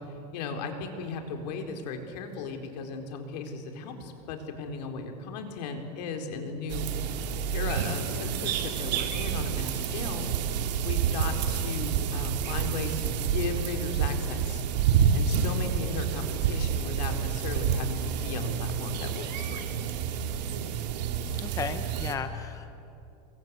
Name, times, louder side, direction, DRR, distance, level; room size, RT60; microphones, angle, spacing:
voice 1, 0.3-6.9 7.5-10.3 10.8-14.6 15.1-19.8, left 4 dB, 75° left, 4 dB, 4.1 m, -36 dB
sound 1, 6.7-22.2, right 7 dB, 80° right, 2.5 m, -29 dB
voice 2, 21.4-22.7, left 6 dB, 15° left, 9 dB, 0.9 m, -35 dB
27.5 x 22.5 x 8.3 m, 2.7 s
supercardioid pair, 155°, 21 cm